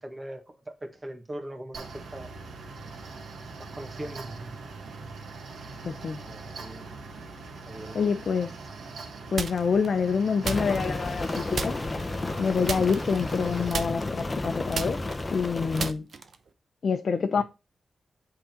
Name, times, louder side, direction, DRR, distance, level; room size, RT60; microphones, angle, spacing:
voice 1, 0.0-1.8 2.1-2.3 3.6-4.6 6.2-6.9 7.6-8.1 17.4-17.5, right 1 dB, 25° right, 1.6 m, -40 dB
Mechanical fan, 1.7-13.7, right 3 dB, 85° right, 1.5 m, -42 dB
voice 2, 5.8-6.2 7.9-8.5 9.3-11.8 12.4-15.0 15.3-16.1 16.8-17.4, left 5 dB, 60° left, 0.7 m, -27 dB
sound 1, 9.4-9.9 10.4-11.3 11.5-12.1 12.6-13.4 13.7-16.5, right 5 dB, 65° right, 0.8 m, -34 dB
Rain, 10.4-15.9, left 2 dB, 25° left, 0.8 m, -32 dB
8.4 x 3.8 x 4.4 m
cardioid pair, 85°, 0 cm